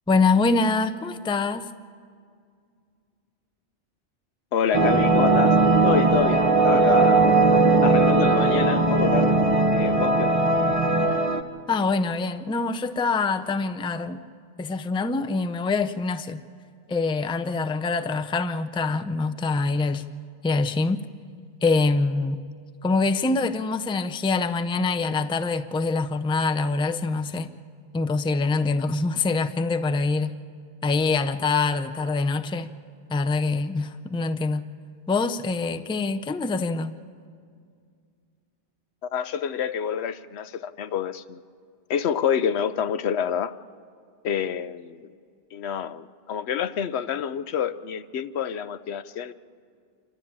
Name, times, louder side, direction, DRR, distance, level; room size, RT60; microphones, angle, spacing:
voice 1, 0.1-1.7 11.7-14.2 14.6-16.4 16.9-20.0 20.4-21.1 21.6-22.4 22.8-27.5 27.9-30.4 30.8-32.7 33.1-34.7 35.1-37.0, left 3 dB, 10° left, 0.4 m, -24 dB
voice 2, 4.5-5.6 5.8-7.3 7.8-9.4 9.7-10.4 39.1-41.4 41.9-43.6 44.2-45.1 45.5-49.3, left 8 dB, 85° left, 1.0 m, -27 dB
sound 1, 4.7-11.4, right 3 dB, 35° right, 1.0 m, -19 dB
27.0 x 12.5 x 8.8 m
omnidirectional pair, 1.1 m